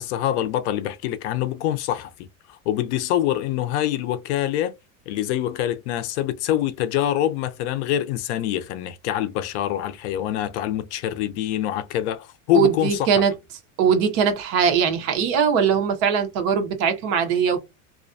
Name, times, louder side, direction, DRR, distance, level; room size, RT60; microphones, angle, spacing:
voice 1, 0.0-2.1 2.5-4.7 5.1-13.1, left 12 dB, 60° left, 0.5 m, -25 dB
voice 2, 12.5-13.3 13.8-17.6, right 7 dB, 45° right, 0.7 m, -21 dB
2.4 x 2.1 x 2.5 m
supercardioid pair, 165°, 39 cm